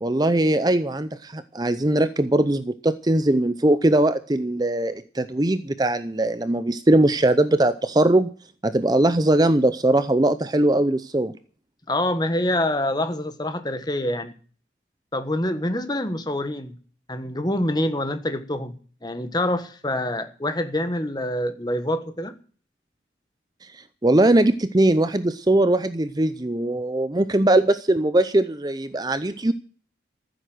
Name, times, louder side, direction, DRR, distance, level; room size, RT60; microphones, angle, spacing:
voice 1, 0.0-8.3 8.6-11.3 24.0-29.5, right 1 dB, 20° right, 13 dB, 0.6 m, -20 dB
voice 2, 11.9-14.3 15.1-16.8 17.1-18.7 19.0-22.4, left 1 dB, 20° left, 10 dB, 1.4 m, -26 dB
15.0 x 8.0 x 7.8 m, 0.42 s
head